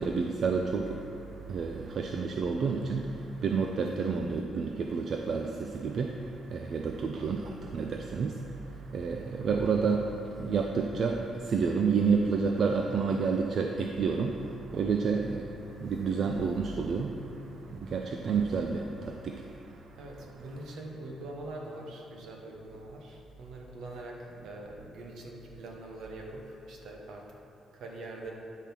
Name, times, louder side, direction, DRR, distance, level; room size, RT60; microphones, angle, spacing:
voice 1, 0.0-20.0, right 5 dB, 55° right, 3 dB, 0.4 m, -30 dB
voice 2, 19.9-27.2 27.7-28.3, right 2 dB, 75° right, 0 dB, 1.2 m, -43 dB
9.9 x 3.7 x 5.9 m, 2.7 s
cardioid pair, 90°, 0 cm